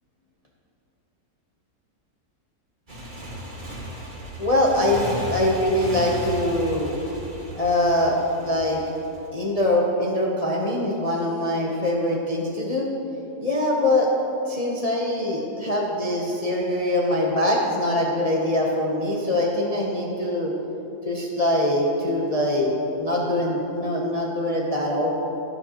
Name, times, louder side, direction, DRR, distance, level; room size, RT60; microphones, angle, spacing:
Motorcycle, 2.9-9.3, equal, 30° right, 1.8 m, -35 dB
voice 1, 4.4-6.9 7.5-8.2 8.4-8.8 9.3-12.9 13.4-14.1 14.5-20.5 21.0-25.1, left 1 dB, 30° left, -3 dB, 0.8 m, -23 dB
12.5 x 10.5 x 3.0 m, 2.9 s
omnidirectional pair, 1.7 m